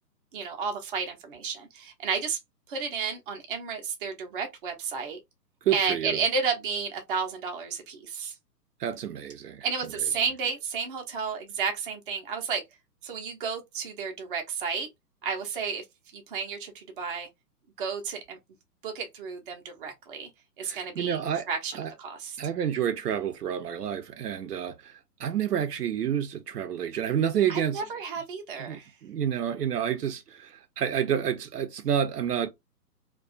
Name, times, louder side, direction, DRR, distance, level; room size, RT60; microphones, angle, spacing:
voice 1, 0.3-2.4 2.7-5.2 5.7-8.3 9.6-12.6 13.0-14.9 15.2-15.8 16.1-17.3 17.8-18.4 18.8-20.3 20.6-21.2 21.5-22.4 27.5-28.9, right 5 dB, 35° right, 0.6 m, -32 dB
voice 2, 5.6-6.2 8.8-9.7 20.7-21.5 21.7-21.9 22.4-24.9 25.2-27.8 28.6-32.5, right 9 dB, 70° right, 0.7 m, -29 dB
2.3 x 2.3 x 2.4 m
hypercardioid pair, 135°, 49 cm